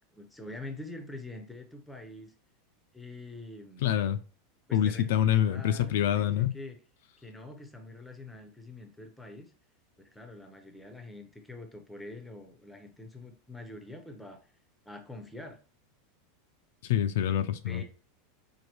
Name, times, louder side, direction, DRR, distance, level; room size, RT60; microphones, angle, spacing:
voice 1, 0.1-2.3 2.9-3.9 4.7-6.8 7.2-9.5 10.0-14.4 14.9-15.6 17.7-17.8, left 2 dB, 5° left, 0.6 m, -45 dB
voice 2, 3.8-4.2 4.7-6.5 16.8-17.8, left 10 dB, 70° left, 0.3 m, -26 dB
4.7 x 2.6 x 2.9 m
supercardioid pair, 155°, 0 cm